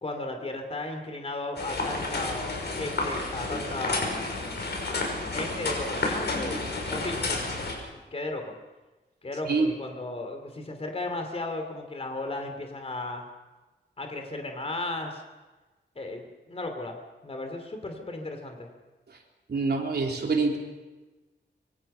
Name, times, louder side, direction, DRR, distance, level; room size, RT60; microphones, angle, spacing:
voice 1, 0.0-4.2 5.3-8.5 9.2-13.2 14.0-15.2 15.9-17.0 17.2-18.7, left 2 dB, 30° left, 4 dB, 2.9 m, -35 dB
sound 1, 1.6-7.7, left 2 dB, 65° left, 5.9 m, -31 dB
voice 2, 19.5-20.6, right 4 dB, 60° right, 1 dB, 3.7 m, -26 dB
25.5 x 24.0 x 5.7 m, 1.2 s
wide cardioid pair, 175°, 19 cm